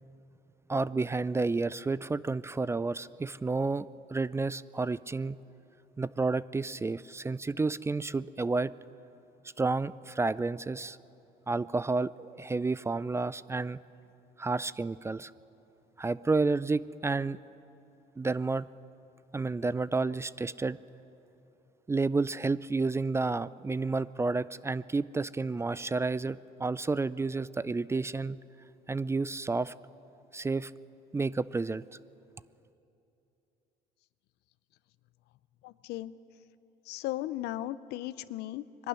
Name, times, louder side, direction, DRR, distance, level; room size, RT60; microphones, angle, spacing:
voice 1, 0.7-5.4 6.0-8.7 9.6-11.0 11.5-13.8 14.4-15.3 16.0-17.4 18.2-18.7 19.3-20.8 21.9-28.4 28.9-29.7 30.3-30.7 31.1-31.8, right 3 dB, 15° right, 18 dB, 0.4 m, -30 dB
voice 2, 35.6-36.1 36.9-38.9, left 15 dB, 75° left, 16 dB, 0.6 m, -36 dB
22.0 x 12.0 x 9.8 m, 2.9 s
supercardioid pair, 90°, 17 cm